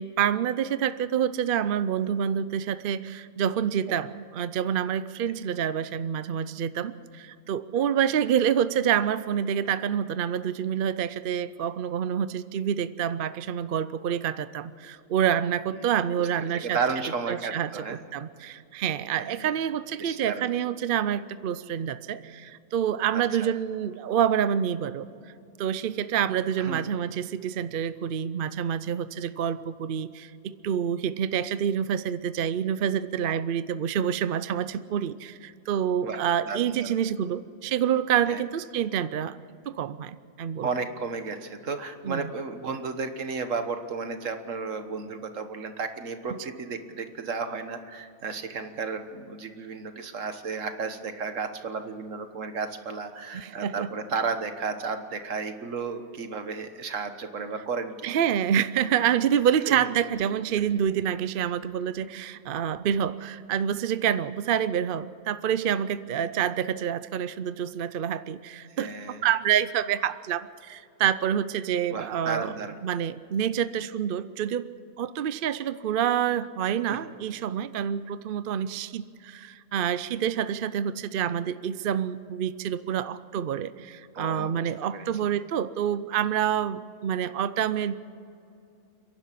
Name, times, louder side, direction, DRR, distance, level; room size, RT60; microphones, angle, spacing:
voice 1, 0.0-16.8 17.3-17.7 18.1-25.1 25.6-39.4 39.7-40.7 42.0-42.3 46.3-46.4 53.3-53.9 58.0-68.9 69.2-74.7 75.0-87.9, right 9 dB, 55° right, 14 dB, 0.6 m, -27 dB
voice 2, 16.4-18.0 19.2-19.5 20.0-20.5 23.4-23.5 26.6-26.8 36.0-36.2 36.5-37.0 38.3-38.4 40.6-58.2 59.7-59.9 68.8-69.2 71.9-72.8 76.9-77.0 84.2-85.1, right 5 dB, 75° right, 8 dB, 1.7 m, -33 dB
29.5 x 11.5 x 8.3 m, 2.5 s
omnidirectional pair, 1.3 m